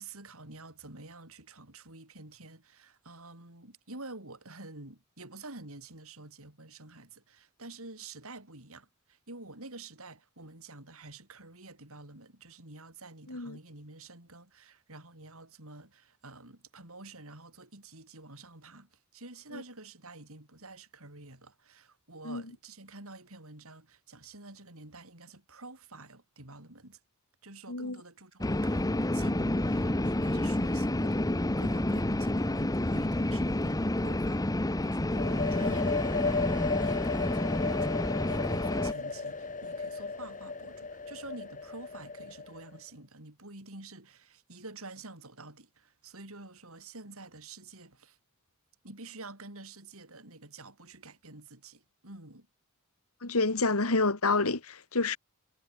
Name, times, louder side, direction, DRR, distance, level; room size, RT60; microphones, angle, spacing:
voice 1, 0.0-27.0 27.4-34.4 34.8-48.2 48.8-52.5, right 2 dB, 65° right, 6.6 m, -49 dB
voice 2, 13.3-13.6 19.5-19.6 22.2-22.4 27.7-28.0 53.2-55.2, left 3 dB, 70° left, 2.3 m, -28 dB
sound 1, 28.4-38.9, left 1 dB, 15° left, 0.9 m, -29 dB
sound 2, 35.1-42.8, left 4 dB, 35° left, 2.2 m, -34 dB
head